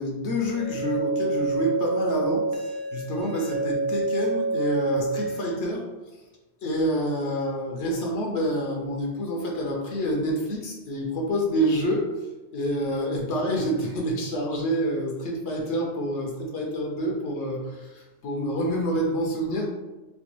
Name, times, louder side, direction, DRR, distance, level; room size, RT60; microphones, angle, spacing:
voice 1, 0.0-5.8 6.6-12.1 12.5-19.7, equal, 75° left, 0 dB, 0.9 m, -27 dB
sound 1, 0.5-5.5, right 3 dB, 60° right, 0.5 m, -28 dB
4.3 x 2.2 x 2.9 m, 1.1 s
omnidirectional pair, 1.2 m